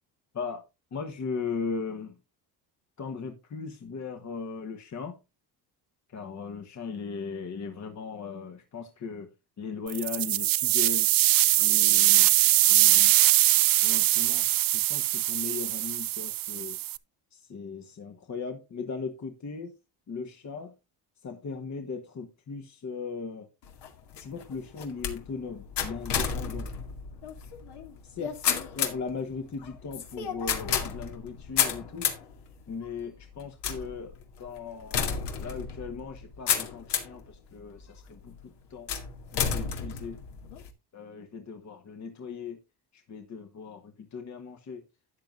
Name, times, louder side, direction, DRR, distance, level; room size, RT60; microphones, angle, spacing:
voice 1, 0.9-2.2 3.0-5.2 6.1-9.3 9.6-11.1 11.6-12.3 12.7-13.2 13.8-16.8 17.3-19.7 20.1-20.7 21.2-23.5 24.2-26.7 28.0-32.1 32.7-38.9 39.3-40.2 40.9-42.6 42.9-44.8, left 5 dB, 40° left, 1.4 m, -38 dB
sound 1, 9.9-17.0, right 15 dB, 55° right, 0.6 m, -22 dB
sound 2, 23.6-37.2 37.8-38.3 38.9-40.7, left 7 dB, 70° left, 2.2 m, -32 dB
13.0 x 9.2 x 2.5 m
cardioid pair, 100°, 43 cm